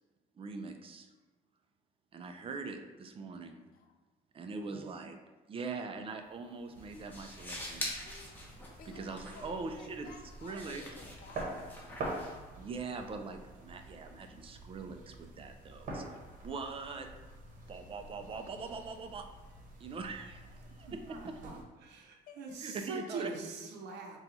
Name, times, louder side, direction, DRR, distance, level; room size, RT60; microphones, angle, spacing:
voice 1, 0.4-1.1 2.1-3.6 4.3-5.2 5.5-7.9 8.9-10.1 10.4-10.8 12.6-17.1 17.7-19.2 19.8-21.4 22.6-23.3, right 4 dB, 35° right, 6 dB, 0.5 m, -42 dB
sound 1, 6.2-13.1, left 1 dB, 10° left, 0.9 m, -46 dB
sound 2, 6.7-21.6, right 2 dB, 50° right, 1.1 m, -47 dB
voice 2, 8.0-8.4 8.8-11.5 22.3-22.4, left 5 dB, 60° left, 5 dB, 0.6 m, -54 dB
voice 3, 20.9-24.2, right 3 dB, 80° right, 1 dB, 0.7 m, -43 dB
4.1 x 2.4 x 4.0 m, 1.2 s
cardioid pair, 110°, 17 cm